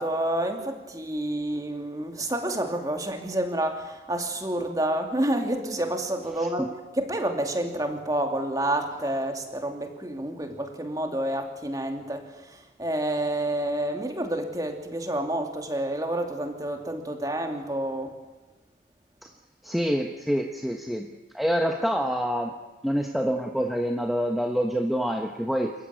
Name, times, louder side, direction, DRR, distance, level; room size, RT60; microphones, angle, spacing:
voice 1, 0.0-18.1, right 1 dB, 20° right, 4 dB, 2.5 m, -29 dB
voice 2, 19.6-21.1 21.3-22.5 22.8-25.7, equal, ahead, 2 dB, 1.3 m, -26 dB
28.0 x 15.0 x 9.4 m, 1.1 s
head